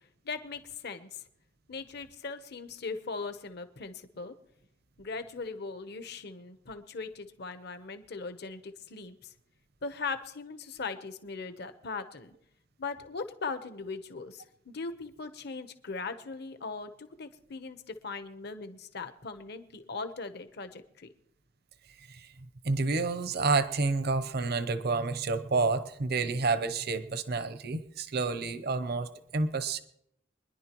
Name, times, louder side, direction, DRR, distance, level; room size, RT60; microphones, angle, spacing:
voice 1, 0.2-1.2 1.7-4.3 5.0-9.3 9.8-12.3 12.8-21.1, left 4 dB, 60° left, 10 dB, 1.0 m, -39 dB
voice 2, 22.6-29.8, right 3 dB, 60° right, 11 dB, 0.8 m, -29 dB
25.0 x 10.5 x 3.0 m, 0.73 s
head